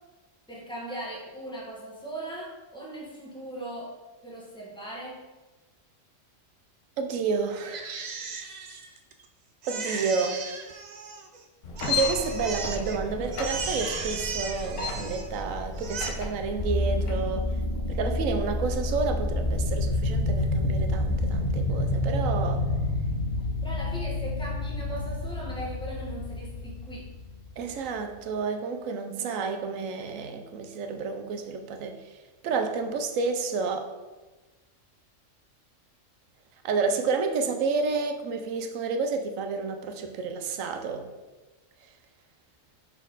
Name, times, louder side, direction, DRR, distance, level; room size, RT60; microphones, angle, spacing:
voice 1, 0.5-3.9 4.2-5.2 23.6-27.1 29.1-30.0 30.4-30.5, right 1 dB, 5° left, -4 dB, 1.1 m, -39 dB
voice 2, 7.0-7.9 9.7-10.4 11.9-17.5 17.9-22.7 27.6-32.0 32.4-33.9 36.6-41.1, right 4 dB, 90° right, 6 dB, 1.0 m, -30 dB
Crying sobbing, 7.6-9.3 9.6-11.4 11.8-13.0 13.3-15.4 15.7-16.1, right 5 dB, 60° right, 0.4 m, -36 dB
sound 1, 11.6-17.2, left 3 dB, 70° left, 1.2 m, -34 dB
sound 2, 16.6-28.0, left 1 dB, 40° left, 0.9 m, -28 dB
5.8 x 4.2 x 3.9 m, 1.2 s
omnidirectional pair, 1.3 m